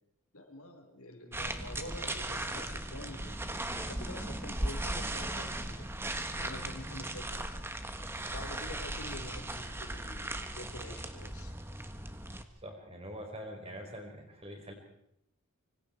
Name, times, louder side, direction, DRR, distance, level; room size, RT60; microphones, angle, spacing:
voice 1, 0.3-5.9 6.4-7.5 8.3-11.5 13.9-14.0, left 1 dB, 85° left, 4 dB, 4.5 m, -47 dB
sound 1, 1.3-12.4, right 1 dB, 10° right, 1.5 m, -37 dB
voice 2, 12.6-14.7, equal, 25° right, 3 dB, 5.1 m, -44 dB
25.5 x 24.5 x 4.7 m, 0.78 s
head